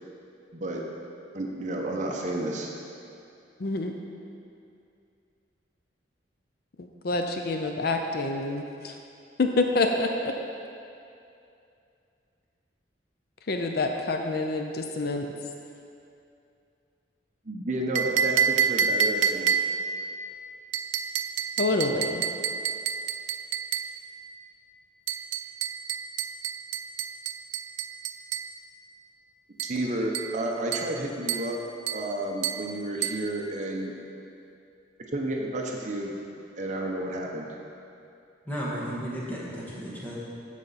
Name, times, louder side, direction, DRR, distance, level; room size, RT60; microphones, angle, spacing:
voice 1, 0.5-0.8 1.3-2.7 17.4-19.6 29.6-31.6 31.9-33.9 35.1-36.2 36.6-37.6, right 1 dB, 40° right, 0 dB, 0.7 m, -31 dB
voice 2, 3.6-3.9 6.8-9.0 9.4-10.3 13.5-15.3 21.6-22.3, left 2 dB, 55° left, 4 dB, 0.5 m, -27 dB
sound 1, 18.0-19.9 20.7-24.0 25.1-28.5 29.6-29.8 30.1-30.4 30.7-31.0 31.3-31.6 31.9-32.1 32.4-32.7 33.0-33.3, right 7 dB, 90° right, 0.4 m, -28 dB
voice 3, 38.5-40.2, equal, 10° left, -7 dB, 1.6 m, -34 dB
13.5 x 4.9 x 4.1 m, 2.6 s
head